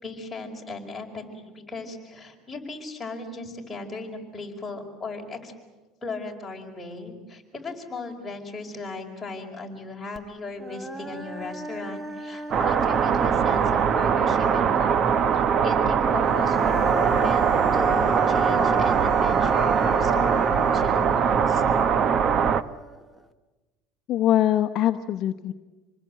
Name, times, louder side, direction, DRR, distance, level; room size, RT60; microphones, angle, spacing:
voice 1, 0.0-5.5 6.0-15.1 15.3-21.6, left 3 dB, 10° left, -1 dB, 4.9 m, -37 dB
Human voice, 10.2-10.3 10.6-14.3 15.9-23.2, right 2 dB, 10° right, 1.3 m, -32 dB
sound 1, 12.5-22.6, right 7 dB, 40° right, 0.8 m, -22 dB
voice 2, 24.1-25.5, left 12 dB, 50° left, 6 dB, 0.9 m, -22 dB
27.0 x 20.5 x 9.0 m, 1.2 s
cardioid pair, 135°, 0 cm